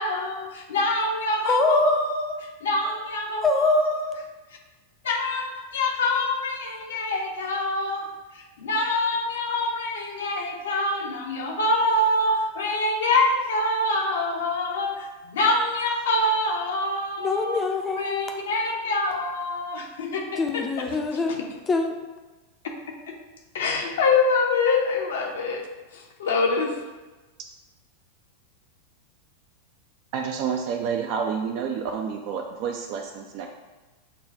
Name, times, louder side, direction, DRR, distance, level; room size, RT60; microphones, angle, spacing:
voice 1, 0.0-2.3 2.6-4.1 5.0-8.1 8.3-17.6 18.0-20.6 23.1-23.2 23.5-25.6 25.9-26.7, left 2 dB, 60° left, 2 dB, 0.6 m, -25 dB
voice 2, 1.5-2.0 3.4-4.0 17.2-18.2 20.4-21.4 21.7-22.0, left 3 dB, 20° left, 3 dB, 0.5 m, -23 dB
voice 3, 30.1-33.5, right 6 dB, 45° right, 3 dB, 0.3 m, -29 dB
6.7 x 2.2 x 2.5 m, 1.2 s
figure-of-eight pair, 90°, 0 cm